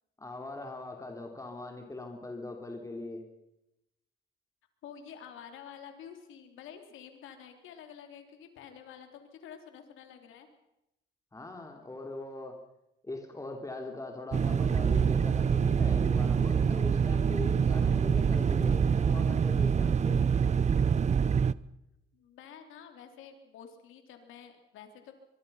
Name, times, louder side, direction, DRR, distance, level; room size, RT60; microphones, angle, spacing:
voice 1, 0.2-3.2 11.3-12.6 13.0-20.2, left 2 dB, 15° left, 2 dB, 3.4 m, -41 dB
voice 2, 4.8-10.5 22.1-25.1, left 8 dB, 85° left, 6 dB, 3.6 m, -49 dB
sound 1, 14.3-21.5, right 6 dB, 35° right, 0.7 m, -25 dB
24.0 x 22.5 x 5.8 m, 0.88 s
cardioid pair, 90°, 20 cm